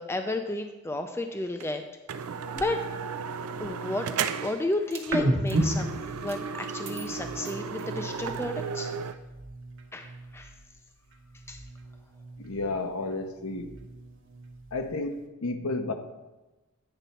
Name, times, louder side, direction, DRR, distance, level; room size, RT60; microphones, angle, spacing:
voice 1, 0.0-1.8 2.5-2.8 3.6-8.9 9.9-10.5 11.5-11.6, left 2 dB, 10° left, 6 dB, 0.3 m, -32 dB
sound 1, 1.6-1.7 2.1-4.7 5.0-5.2 5.5-9.1, right 6 dB, 85° right, 0.4 m, -34 dB
sound 2, 2.3-3.9 4.7-5.1 5.4-5.6 6.3-6.4 6.8-8.4, right 4 dB, 30° right, 0.8 m, -48 dB
sound 3, 5.1-8.6 9.0-10.8 11.1-12.9 13.3-15.1, right 1 dB, 55° right, 1.0 m, -34 dB
voice 2, 12.4-13.7 14.7-15.9, left 2 dB, 70° left, 6 dB, 0.8 m, -32 dB
9.1 x 4.1 x 5.6 m, 1.1 s
head